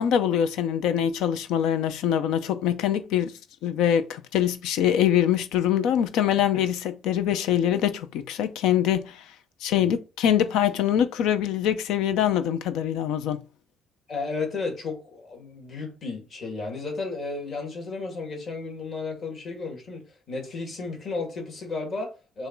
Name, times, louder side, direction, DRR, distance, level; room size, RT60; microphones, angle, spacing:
voice 1, 0.0-3.3 3.6-9.2 9.6-13.4, left 10 dB, 85° left, 0.8 m, -24 dB
voice 2, 14.1-20.0 20.3-22.5, left 3 dB, 35° left, 2.4 m, -33 dB
7.0 x 2.8 x 4.6 m
cardioid pair, 170°, 0 cm